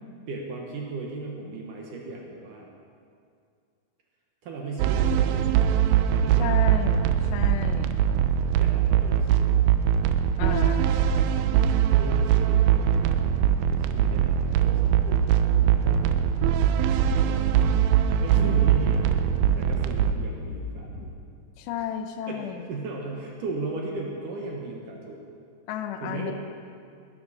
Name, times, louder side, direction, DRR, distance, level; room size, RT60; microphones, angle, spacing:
voice 1, 0.3-2.7 4.4-6.8 8.6-9.6 11.9-13.3 13.6-16.2 17.1-17.7 18.2-19.2 19.5-21.1 21.8-21.9 22.3-25.2 26.0-26.3, right 3 dB, 65° right, 0 dB, 2.4 m, -37 dB
sound 1, 4.8-20.1, right 9 dB, 85° right, 2.1 m, -22 dB
voice 2, 6.4-8.0 10.4-10.9 18.4-19.0 21.6-22.7 25.7-26.3, left 9 dB, 85° left, 7 dB, 3.0 m, -33 dB
sound 2, 14.6-21.1, left 4 dB, 70° left, 2.7 m, -41 dB
17.5 x 12.5 x 4.2 m, 2.3 s
omnidirectional pair, 4.8 m